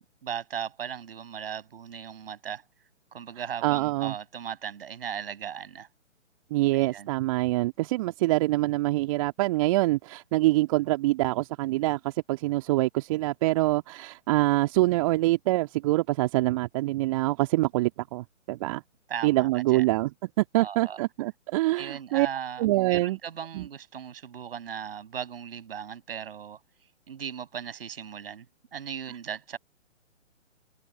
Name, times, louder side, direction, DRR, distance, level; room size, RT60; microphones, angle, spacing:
voice 1, 0.0-2.6 3.1-5.9 6.7-7.1 19.1-19.9 20.6-21.0 21.7-26.6 27.1-28.5 28.7-29.6, right 8 dB, 50° right, 6.5 m, -37 dB
voice 2, 3.6-4.1 6.5-18.8 19.2-20.1 20.4-22.3 22.6-23.2 23.5-23.7, right 18 dB, 25° right, 2.1 m, -25 dB
open air
figure-of-eight pair, 135°, 37 cm